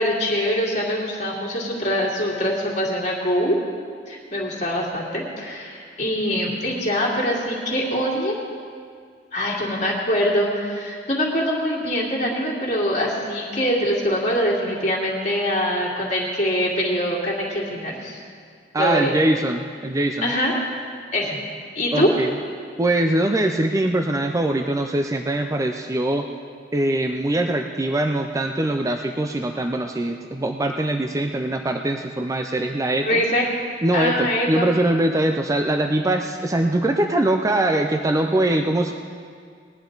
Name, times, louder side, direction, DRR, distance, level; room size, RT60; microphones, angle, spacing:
voice 1, 0.0-3.6 4.1-8.3 9.3-18.2 18.8-19.1 20.2-20.5 21.1-21.4 21.8-22.1 33.0-33.5 33.9-34.7, equal, 40° left, -5 dB, 2.4 m, -23 dB
voice 2, 18.7-20.3 21.9-22.3 22.8-26.3 26.7-33.2 33.8-38.9, right 1 dB, 20° right, 4 dB, 0.4 m, -22 dB
19.5 x 10.5 x 3.9 m, 2.1 s
head